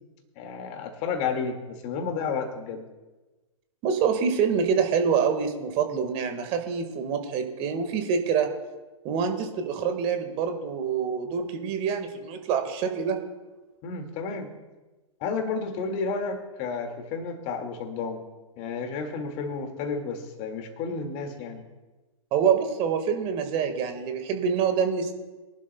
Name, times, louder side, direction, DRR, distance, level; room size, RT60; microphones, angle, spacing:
voice 1, 0.4-2.9 13.8-14.5 15.2-18.2 18.6-21.7, left 5 dB, 35° left, 5 dB, 2.1 m, -31 dB
voice 2, 3.8-8.5 9.0-13.2 22.3-25.1, right 6 dB, 35° right, 6 dB, 1.7 m, -26 dB
23.0 x 11.5 x 2.3 m, 1.2 s
figure-of-eight pair, 110°, 18 cm